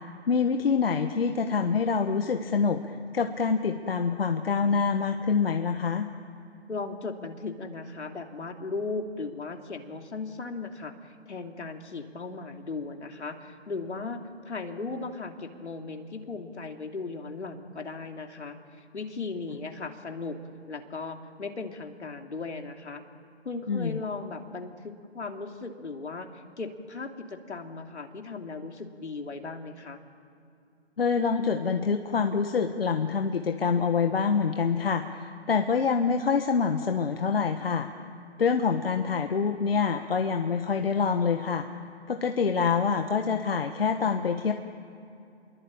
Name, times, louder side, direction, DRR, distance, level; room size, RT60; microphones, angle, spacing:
voice 1, 0.3-6.1 23.7-24.0 31.0-37.9 38.4-41.6 42.1-44.5, left 5 dB, 55° left, 6 dB, 1.5 m, -26 dB
voice 2, 6.7-20.4 20.7-23.0 23.4-26.3 26.6-30.0, left 3 dB, 70° left, 4 dB, 3.1 m, -37 dB
29.5 x 23.0 x 8.9 m, 2.7 s
hypercardioid pair, 160°, 35 cm